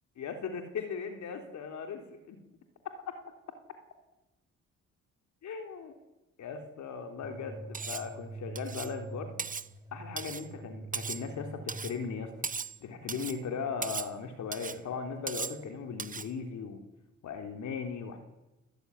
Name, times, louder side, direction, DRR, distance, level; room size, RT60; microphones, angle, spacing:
voice 1, 0.2-2.4 3.1-3.2 5.4-5.9 6.4-9.3 9.9-12.3 12.8-16.8 17.2-18.2, left 5 dB, 70° left, 5 dB, 3.6 m, -38 dB
sound 1, 7.2-13.6, right 3 dB, 10° right, 1.6 m, -46 dB
Cutlery silverware, 7.7-8.1 8.6-9.0 9.4-9.7 10.2-10.5 10.9-11.3 11.7-12.0 12.4-12.8 13.1-13.4 13.8-14.1 14.5-14.8 15.3-15.6 16.0-16.3, right 5 dB, 25° right, 0.9 m, -37 dB
29.5 x 15.0 x 9.6 m, 1.0 s
cardioid pair, 90°, 30 cm